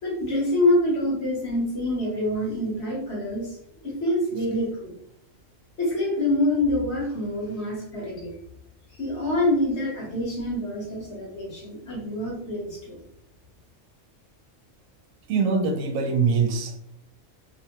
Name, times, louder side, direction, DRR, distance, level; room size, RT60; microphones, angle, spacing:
voice 1, 0.0-3.5 3.8-4.9 5.8-8.3 9.0-13.0, left 1 dB, 55° left, -4 dB, 1.4 m, -26 dB
voice 2, 15.3-16.9, right 5 dB, 85° right, 5 dB, 1.0 m, -23 dB
2.9 x 2.1 x 2.9 m, 0.77 s
omnidirectional pair, 1.4 m